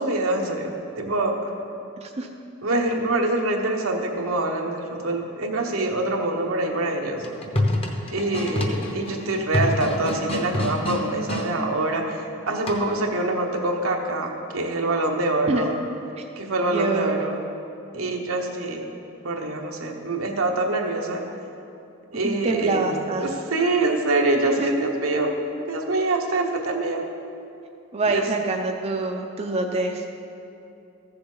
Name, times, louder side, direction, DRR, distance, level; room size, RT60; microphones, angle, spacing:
voice 1, 0.0-1.4 2.6-7.2 8.1-15.8 16.4-17.4 17.9-18.8 19.2-21.2 22.1-22.9 23.2-25.3 25.7-27.0 28.1-28.2, right 2 dB, 85° right, 1 dB, 1.1 m, -25 dB
sound 1, 7.1-11.5 12.7-13.1, left 1 dB, 30° left, 0.9 m, -27 dB
voice 2, 16.7-17.2 22.2-23.3 24.6-24.7 27.9-30.1, right 3 dB, 30° right, 2 dB, 0.5 m, -26 dB
14.0 x 6.9 x 3.9 m, 2.7 s
head